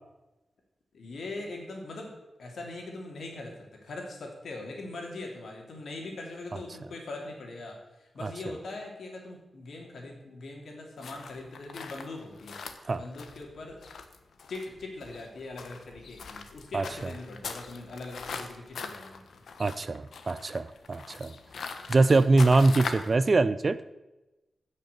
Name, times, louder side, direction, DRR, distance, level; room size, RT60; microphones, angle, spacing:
voice 1, 0.9-2.1 2.4-12.6 12.9-13.8 14.5-19.4, left 2 dB, 70° left, 1 dB, 3.1 m, -41 dB
sound 1, 11.0-23.2, left 5 dB, 90° left, 1.1 m, -41 dB
voice 2, 19.6-21.3 21.9-23.8, right 3 dB, 30° right, 15 dB, 0.4 m, -23 dB
15.0 x 6.4 x 6.7 m, 1.0 s
wide cardioid pair, 180°, 0 cm